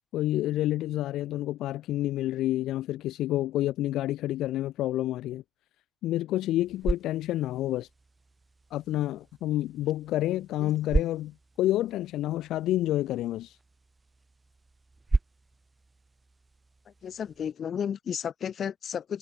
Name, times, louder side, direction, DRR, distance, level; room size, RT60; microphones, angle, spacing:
voice 1, 0.1-5.4 6.0-7.9 8.7-13.6, left 14 dB, 80° left, 0.7 m, -29 dB
sound 1, 6.4-17.5, right 3 dB, 15° right, 0.9 m, -36 dB
voice 2, 17.0-19.2, left 8 dB, 40° left, 3.5 m, -33 dB
cardioid pair, 170°, 0 cm